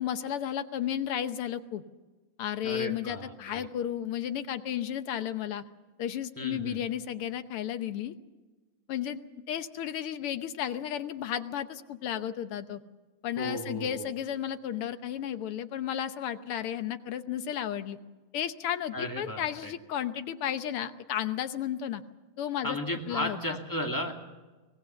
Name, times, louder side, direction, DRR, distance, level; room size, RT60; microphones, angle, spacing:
voice 1, 0.0-1.8 2.4-5.6 6.0-8.2 8.9-9.2 9.5-12.8 13.2-18.0 18.3-22.0 22.4-22.8 23.1-23.6, left 10 dB, 85° left, 10 dB, 1.9 m, -33 dB
voice 2, 2.6-3.7 6.4-6.8 13.4-14.1 18.9-19.7 22.6-24.1, left 1 dB, 10° left, 2 dB, 2.4 m, -34 dB
24.0 x 18.5 x 7.0 m, 1.2 s
omnidirectional pair, 2.4 m